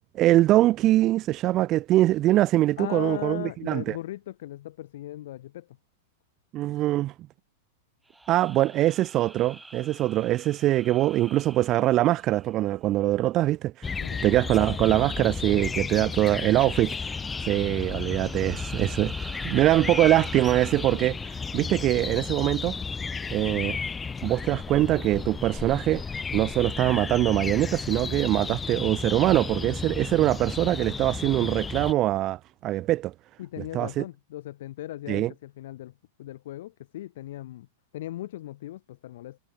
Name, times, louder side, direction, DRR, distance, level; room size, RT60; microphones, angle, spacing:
voice 1, 0.2-4.0 6.5-7.1 8.3-13.9 14.2-17.1 17.4-22.8 23.3-23.8 24.2-26.0 26.3-33.1 33.7-34.0 35.1-35.3, right 15 dB, 30° right, 0.6 m, -23 dB
voice 2, 2.8-5.8 14.0-14.2 33.4-37.7 37.9-39.4, left 14 dB, 65° left, 1.1 m, -38 dB
sound 1, 8.1-12.9 16.7-21.4, right 2 dB, 5° right, 3.7 m, -45 dB
sound 2, 13.8-31.9, left 5 dB, 10° left, 0.9 m, -33 dB
supercardioid pair, 145°, 0 cm